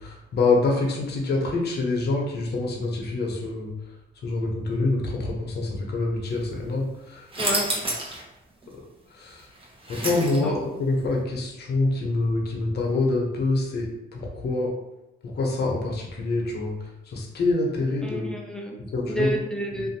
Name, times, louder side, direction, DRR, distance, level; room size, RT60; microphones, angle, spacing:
voice 1, 0.0-3.7 4.2-7.3 9.1-9.5 9.9-14.7 15.2-16.8 17.1-18.3 18.9-19.4, left 3 dB, 55° left, 0 dB, 0.8 m, -26 dB
sound 1, 7.3-8.2 8.6-8.7 9.4-10.7, right 1 dB, 25° right, 0.9 m, -28 dB
voice 2, 7.4-7.7 10.4-10.5 18.0-18.8 19.1-19.9, right 1 dB, 5° left, 0 dB, 0.4 m, -29 dB
2.5 x 2.5 x 2.7 m, 0.95 s
cardioid pair, 90°, 20 cm